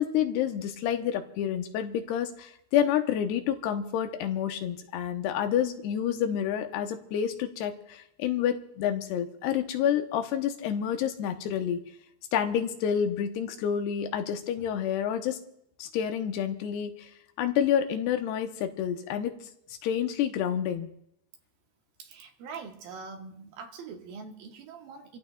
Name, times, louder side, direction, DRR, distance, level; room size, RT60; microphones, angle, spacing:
voice 1, 0.0-11.8 12.3-15.4 15.8-17.1 17.4-19.4 19.8-20.9, left 9 dB, 85° left, 6 dB, 2.9 m, -28 dB
voice 2, 22.0-25.2, right 5 dB, 70° right, 3 dB, 2.6 m, -43 dB
28.5 x 15.5 x 2.3 m, 0.74 s
omnidirectional pair, 4.7 m